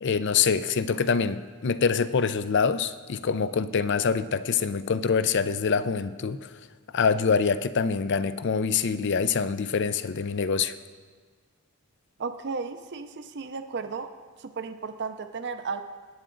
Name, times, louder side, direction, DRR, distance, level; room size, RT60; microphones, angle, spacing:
voice 1, 0.0-6.5 6.9-10.7, left 5 dB, 55° left, 13 dB, 0.5 m, -25 dB
voice 2, 12.2-14.1 14.4-15.8, right 4 dB, 50° right, 8 dB, 0.5 m, -34 dB
20.0 x 8.8 x 3.8 m, 1.5 s
head